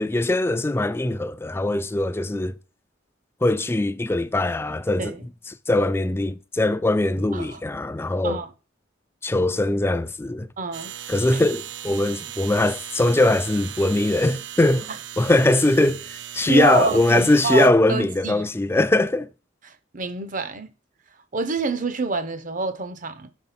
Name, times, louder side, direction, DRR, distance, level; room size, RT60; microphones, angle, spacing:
voice 1, 0.0-2.6 3.4-5.1 5.7-8.4 9.2-10.5 11.1-14.9 15.2-19.3, left 2 dB, 15° left, 0.3 m, -21 dB
voice 2, 10.6-10.9 11.3-11.4 14.9-15.0 16.4-18.5 19.6-20.7 21.3-23.3, right 3 dB, 45° right, 0.8 m, -27 dB
sound 1, 10.7-17.7, right 11 dB, 70° right, 0.6 m, -37 dB
5.4 x 4.8 x 5.8 m
head